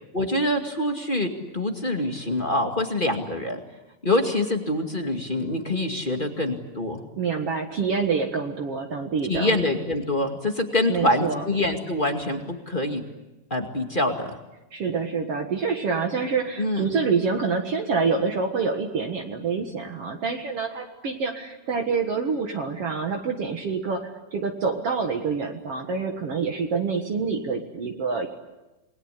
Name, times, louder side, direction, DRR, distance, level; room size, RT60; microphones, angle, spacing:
voice 1, 0.1-3.6 4.0-7.0 9.3-13.0 13.5-14.4 16.6-16.9, left 1 dB, 20° left, 4 dB, 1.9 m, -25 dB
voice 2, 7.2-9.5 10.9-11.4 14.7-28.3, right 5 dB, 55° right, 3 dB, 2.4 m, -27 dB
28.0 x 21.0 x 8.3 m, 1.0 s
omnidirectional pair, 3.5 m